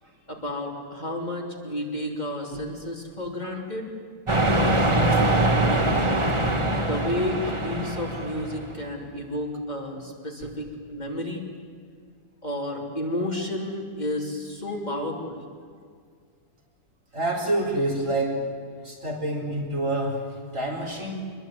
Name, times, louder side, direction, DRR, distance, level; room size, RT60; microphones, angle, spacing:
voice 1, 0.3-3.9 6.8-11.5 12.4-15.4, left 1 dB, 25° left, 0 dB, 3.4 m, -31 dB
sound 1, 4.3-8.8, right 1 dB, 20° right, 1.6 m, -23 dB
voice 2, 17.1-18.4 18.8-21.3, right 1 dB, 50° right, 0 dB, 4.9 m, -28 dB
26.0 x 22.0 x 9.4 m, 2.1 s
omnidirectional pair, 1.7 m